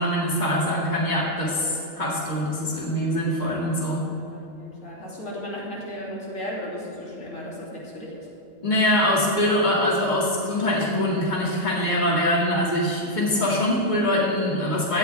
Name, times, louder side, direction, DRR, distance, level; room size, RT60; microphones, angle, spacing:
voice 1, 0.0-4.1 8.6-15.0, left 1 dB, 35° left, -4 dB, 2.4 m, -23 dB
voice 2, 4.5-8.2, equal, 80° left, -5 dB, 3.3 m, -35 dB
17.0 x 12.5 x 3.4 m, 3.0 s
omnidirectional pair, 1.3 m